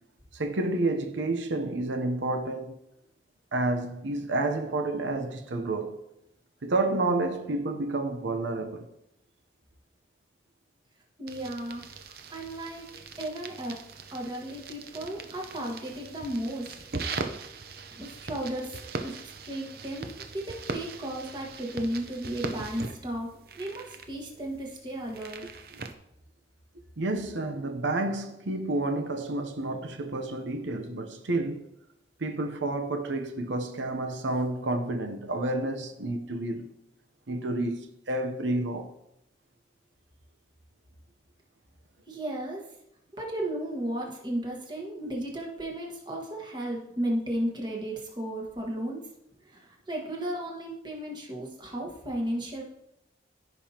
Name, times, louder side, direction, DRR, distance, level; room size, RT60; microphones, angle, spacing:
voice 1, 0.3-2.8 3.5-6.0 6.6-8.9 27.0-31.7 32.2-36.7 37.3-38.9, right 2 dB, 90° right, 0.8 m, -30 dB
voice 2, 11.2-12.8 13.2-13.8 14.1-16.8 18.0-23.3 23.5-25.4 27.3-27.4 42.1-42.6 43.1-49.1 49.4-52.6, right 1 dB, 25° right, 1.5 m, -34 dB
sound 1, 11.3-25.9, right 3 dB, 55° right, 0.7 m, -40 dB
15.0 x 5.4 x 2.9 m
head